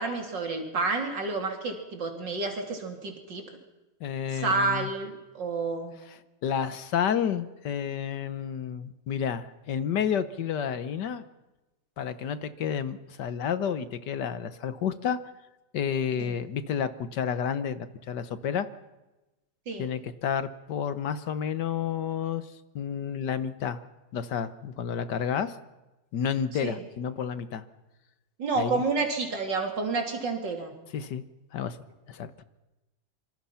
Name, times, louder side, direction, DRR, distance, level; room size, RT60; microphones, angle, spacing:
voice 1, 0.0-3.5 4.3-6.0 16.2-16.4 19.7-19.9 26.6-26.8 28.4-30.7, right 3 dB, 90° right, 3 dB, 3.7 m, -30 dB
voice 2, 4.0-4.9 6.4-11.2 12.0-15.2 15.7-18.7 19.8-22.4 22.8-23.8 24.1-25.6 26.1-27.6 28.6-28.8 30.9-31.2 31.5-31.8 32.1-32.3, left 8 dB, 75° left, 12 dB, 1.7 m, -30 dB
26.5 x 24.5 x 5.8 m, 1.1 s
omnidirectional pair, 1.9 m